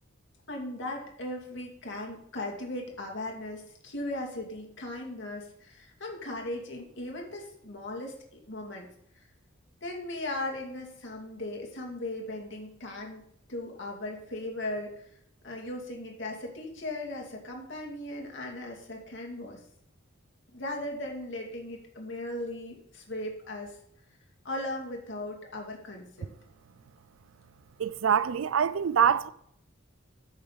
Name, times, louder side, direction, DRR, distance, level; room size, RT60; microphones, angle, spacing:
voice 1, 0.5-8.9 9.8-13.2 13.5-15.1 15.4-19.6 20.5-23.8 24.4-26.3, left 1 dB, 65° left, 2.4 m, -38 dB
voice 2, 27.8-29.3, right 7 dB, 80° right, 0.4 m, -25 dB
15.0 x 6.4 x 4.0 m
head